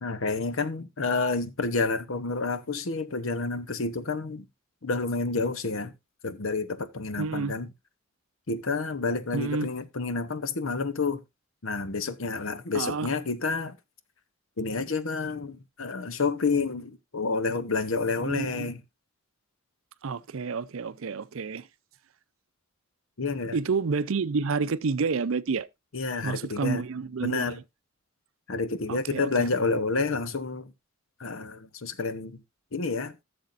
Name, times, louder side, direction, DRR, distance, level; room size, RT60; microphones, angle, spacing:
voice 1, 0.0-4.5 4.8-5.9 6.2-7.7 8.5-11.2 11.6-13.8 14.6-18.8 23.2-23.6 25.9-26.8 27.2-27.6 28.5-30.7 31.2-32.4 32.7-33.1, left 3 dB, 70° left, 0.9 m, -29 dB
voice 2, 7.2-7.5 9.3-9.7 12.7-13.1 18.2-18.7 20.0-21.7 23.5-25.7 26.2-27.5 28.9-29.3, right 4 dB, 70° right, 0.5 m, -29 dB
14.5 x 7.0 x 2.6 m
head